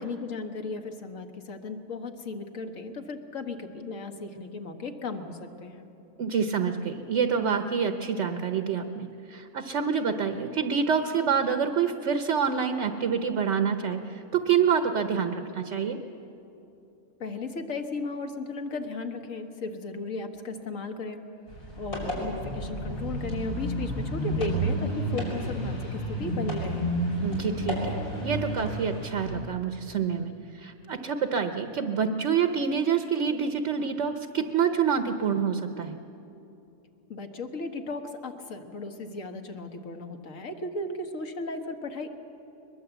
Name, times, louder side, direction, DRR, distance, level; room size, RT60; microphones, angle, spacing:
voice 1, 0.0-5.9 17.2-21.2 21.8-26.9 37.1-42.1, left 3 dB, 60° left, 6 dB, 1.8 m, -36 dB
voice 2, 6.2-16.0 27.2-36.0, right 6 dB, 55° right, 7 dB, 1.2 m, -27 dB
sound 1, 21.5-29.3, right 1 dB, 75° left, 5.8 m, -31 dB
22.0 x 21.5 x 8.1 m, 2.9 s
omnidirectional pair, 1.6 m